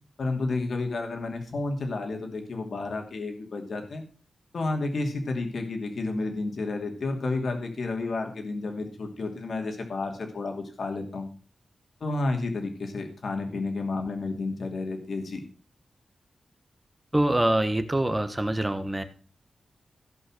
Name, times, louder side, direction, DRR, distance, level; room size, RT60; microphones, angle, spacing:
voice 1, 0.2-4.0 4.5-11.3 12.0-15.4, left 3 dB, 60° left, 4 dB, 2.7 m, -31 dB
voice 2, 17.1-19.0, right 1 dB, 10° right, 9 dB, 1.3 m, -25 dB
16.0 x 5.6 x 6.2 m, 0.38 s
wide cardioid pair, 140°, 0 cm